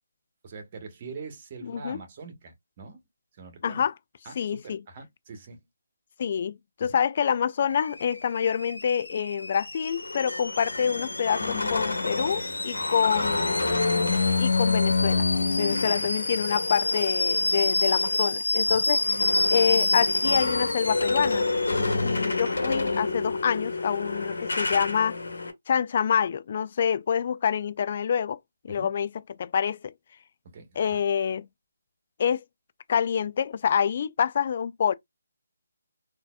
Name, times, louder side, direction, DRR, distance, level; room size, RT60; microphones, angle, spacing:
voice 1, 0.4-3.0 3.3-3.8 4.2-5.6 12.2-13.6 15.6-16.1 18.7-18.8 28.7-28.9 30.5-31.0, right 4 dB, 35° right, 1.2 m, -44 dB
voice 2, 1.6-2.0 3.6-3.9 4.4-4.8 6.2-13.7 14.4-15.3 15.6-19.0 19.5-21.5 22.0-25.2 25.7-28.4 28.6-29.1 29.4-29.9 30.8-31.5 32.2-32.4 32.9-34.9, left 7 dB, 40° left, 0.4 m, -27 dB
Alarm / Boiling, 7.7-22.5, left 2 dB, 90° left, 0.7 m, -29 dB
sound 1, 9.9-18.3 18.7-25.5, left 3 dB, 70° left, 1.2 m, -28 dB
3.9 x 2.7 x 2.3 m
figure-of-eight pair, 155°, 0 cm